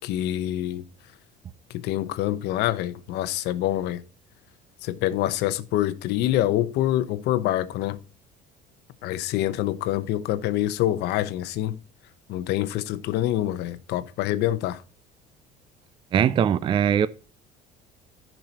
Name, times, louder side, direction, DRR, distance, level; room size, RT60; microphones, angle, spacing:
voice 1, 0.0-0.8 1.7-4.0 4.8-8.0 9.0-11.8 12.3-14.8, left 13 dB, 70° left, 0.9 m, -26 dB
voice 2, 16.1-17.1, right 8 dB, 30° right, 0.4 m, -21 dB
15.0 x 5.6 x 2.9 m
cardioid pair, 150°, 18 cm